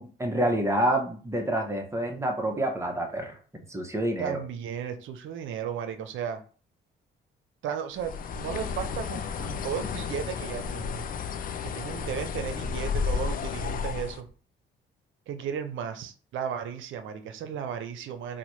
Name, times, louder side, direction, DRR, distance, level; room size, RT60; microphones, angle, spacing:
voice 1, 0.0-4.4, right 1 dB, 15° right, 3 dB, 0.8 m, -28 dB
voice 2, 4.2-6.4 7.6-11.1 11.6-14.3 15.3-18.4, right 8 dB, 80° right, 9 dB, 0.6 m, -35 dB
Bird, 8.0-14.2, left 6 dB, 45° left, 0.4 m, -32 dB
4.0 x 2.1 x 3.1 m, 0.39 s
cardioid pair, 90°, 20 cm